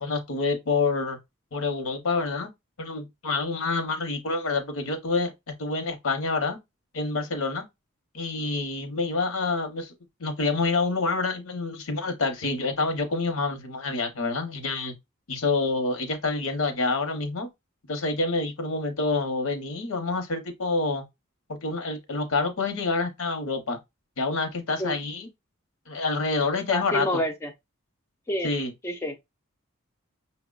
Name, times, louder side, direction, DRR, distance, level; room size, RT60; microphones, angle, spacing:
voice 1, 0.0-1.2 1.5-2.5 2.8-5.3 5.6-6.6 6.9-7.6 8.1-9.9 10.2-14.9 15.3-17.5 17.9-21.0 21.5-23.8 24.2-25.3 25.9-27.1 28.4-28.7, left 3 dB, 75° left, 0.8 m, -27 dB
voice 2, 26.7-27.5 28.3-28.5 28.8-29.2, equal, 10° left, 0.3 m, -28 dB
5.6 x 2.1 x 2.3 m
head